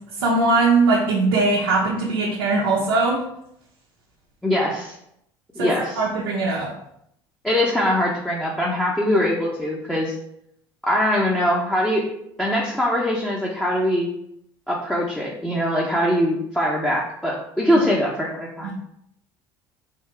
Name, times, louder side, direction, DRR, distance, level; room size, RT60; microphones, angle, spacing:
voice 1, 0.2-3.2 5.6-6.7 17.7-17.8 18.6-18.7, right 3 dB, 90° right, -4 dB, 0.8 m, -20 dB
voice 2, 4.4-5.0 5.5-6.0 7.4-10.1 10.8-12.1 12.4-14.1 14.7-18.7, equal, 5° left, -5 dB, 0.9 m, -22 dB
3.7 x 2.5 x 4.3 m, 0.76 s
hypercardioid pair, 75°, 12 cm